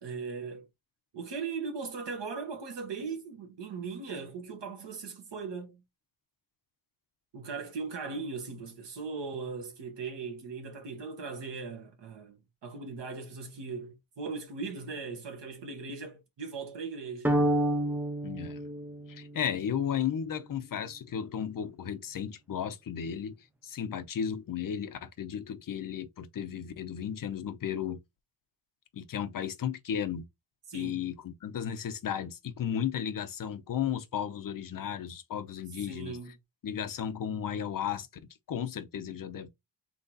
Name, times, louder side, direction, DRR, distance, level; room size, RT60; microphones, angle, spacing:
voice 1, 0.0-0.7 1.1-5.8 7.3-17.3 30.7-31.1 35.9-36.3, right 4 dB, 65° right, 1.5 m, -39 dB
sound 1, 17.2-19.6, right 1 dB, 5° right, 0.4 m, -29 dB
voice 2, 18.2-18.6 19.1-23.4 23.6-28.0 28.9-30.3 30.7-36.2 36.6-38.1 38.5-39.5, left 8 dB, 45° left, 0.7 m, -34 dB
4.0 x 3.0 x 3.9 m
wide cardioid pair, 175°, 46 cm